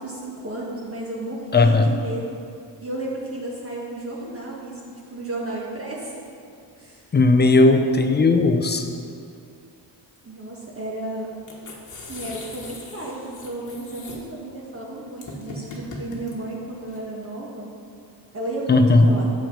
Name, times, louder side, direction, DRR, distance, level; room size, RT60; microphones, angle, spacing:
voice 1, 0.0-2.4 2.8-6.2 6.8-7.1 10.2-11.3 12.1-17.7 18.3-19.3, right 2 dB, 30° right, -4 dB, 1.4 m, -33 dB
voice 2, 1.5-1.9 7.1-8.8 18.7-19.1, left 3 dB, 25° left, 6 dB, 0.6 m, -16 dB
sound 1, 11.4-17.0, left 2 dB, 45° left, 1.4 m, -39 dB
6.5 x 6.2 x 5.2 m, 2.4 s
cardioid pair, 85°, 43 cm